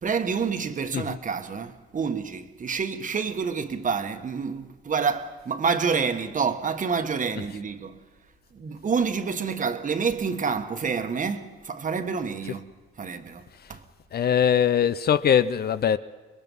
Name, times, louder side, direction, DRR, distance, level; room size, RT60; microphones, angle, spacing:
voice 1, 0.0-8.0 8.5-12.7 13.0-13.8, right 5 dB, 40° right, 1.4 m, -28 dB
voice 2, 14.1-16.0, left 8 dB, 50° left, 0.7 m, -21 dB
25.5 x 21.5 x 5.4 m
cardioid pair, 90°, 20 cm